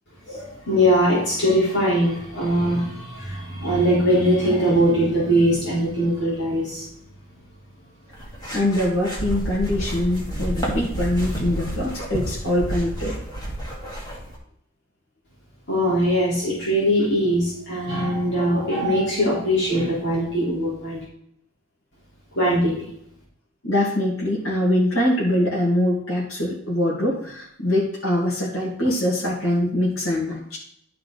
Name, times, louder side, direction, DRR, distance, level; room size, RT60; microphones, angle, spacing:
voice 1, 0.3-6.9 15.7-21.0 22.4-22.7, equal, 55° left, -7 dB, 3.8 m, -21 dB
sound 1, 8.1-14.3, right 1 dB, 20° left, 2.2 m, -30 dB
voice 2, 8.5-13.1 23.6-30.6, left 1 dB, 80° left, -5 dB, 2.1 m, -23 dB
12.0 x 4.6 x 4.0 m, 0.70 s
head